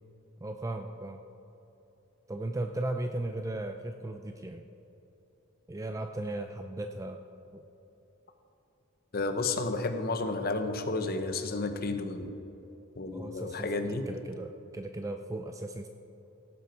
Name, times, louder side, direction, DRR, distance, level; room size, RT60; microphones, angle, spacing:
voice 1, 0.4-1.2 2.3-4.7 5.7-7.2 7.5-7.6 13.1-15.9, right 2 dB, 15° right, 5 dB, 0.4 m, -36 dB
voice 2, 9.1-12.3 13.0-14.0, left 3 dB, 45° left, 7 dB, 0.9 m, -32 dB
17.0 x 7.8 x 4.6 m, 3.0 s
head